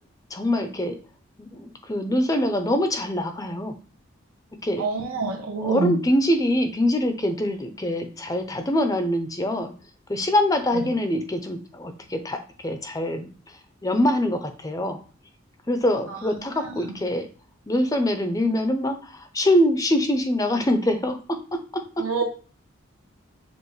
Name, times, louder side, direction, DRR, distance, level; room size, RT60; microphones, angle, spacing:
voice 1, 0.3-1.0 1.4-3.7 4.6-4.9 5.6-9.7 10.1-15.0 15.7-17.3 17.7-21.2, left 1 dB, 15° left, 6 dB, 0.5 m, -24 dB
voice 2, 4.8-6.0 10.7-10.8 16.6-16.7 22.0-22.2, right 4 dB, 90° right, 2 dB, 1.1 m, -26 dB
6.8 x 2.5 x 3.1 m, 0.39 s
head